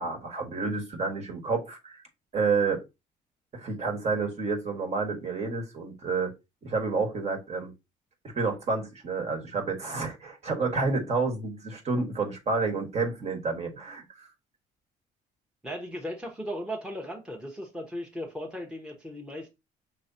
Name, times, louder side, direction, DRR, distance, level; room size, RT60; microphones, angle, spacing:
voice 1, 0.0-2.0 2.3-2.8 3.5-6.3 6.6-7.7 8.3-14.3, right 4 dB, 40° right, 1.5 m, -29 dB
voice 2, 15.6-19.5, equal, 5° right, 1.0 m, -37 dB
5.9 x 3.1 x 2.7 m
cardioid pair, 110°, 17 cm